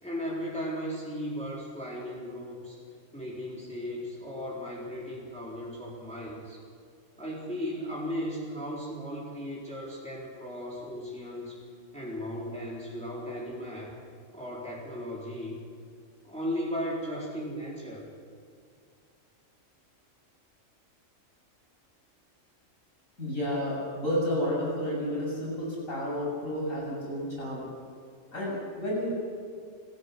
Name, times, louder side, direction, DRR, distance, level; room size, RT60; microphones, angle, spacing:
voice 1, 0.0-2.8 3.1-6.6 7.2-11.7 11.9-14.0 14.3-15.7 16.2-18.1, equal, 5° left, -6 dB, 3.9 m, -36 dB
voice 2, 23.2-27.7 28.3-29.1, equal, 85° left, -4 dB, 8.0 m, -31 dB
27.0 x 15.5 x 6.9 m, 2.2 s
omnidirectional pair, 1.4 m